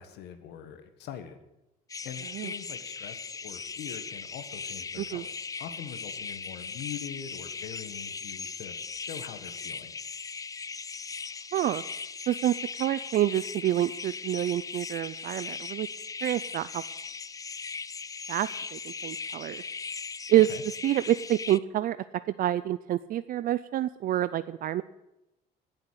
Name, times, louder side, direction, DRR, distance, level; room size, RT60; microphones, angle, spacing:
voice 1, 0.0-1.4 2.0-9.9 20.5-20.6, left 9 dB, 85° left, 9 dB, 1.5 m, -43 dB
sound 1, 1.9-21.6, left 5 dB, 20° left, 0.4 m, -38 dB
voice 2, 11.5-11.8 12.3-15.9 16.2-16.8 18.3-19.6 20.3-20.5 20.8-22.0 22.4-24.8, right 13 dB, 55° right, 15 dB, 0.5 m, -27 dB
16.0 x 7.1 x 9.6 m, 0.92 s
cardioid pair, 110°, 17 cm